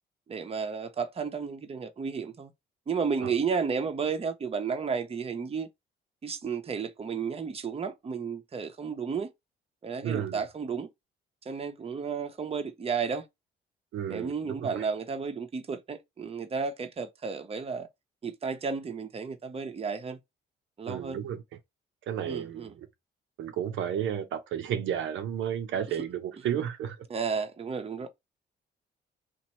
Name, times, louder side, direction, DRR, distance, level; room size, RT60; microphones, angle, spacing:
voice 1, 0.3-2.5 2.9-5.7 6.2-9.3 9.8-10.9 11.5-13.2 14.1-17.9 18.2-20.2 20.8-21.2 22.3-22.7 27.1-28.1, right 5 dB, 30° right, 0.7 m, -32 dB
voice 2, 10.0-10.4 13.9-14.8 20.9-21.4 22.1-22.9 23.4-27.0, right 9 dB, 80° right, 0.6 m, -32 dB
3.0 x 2.6 x 4.2 m
cardioid pair, 90°, 20 cm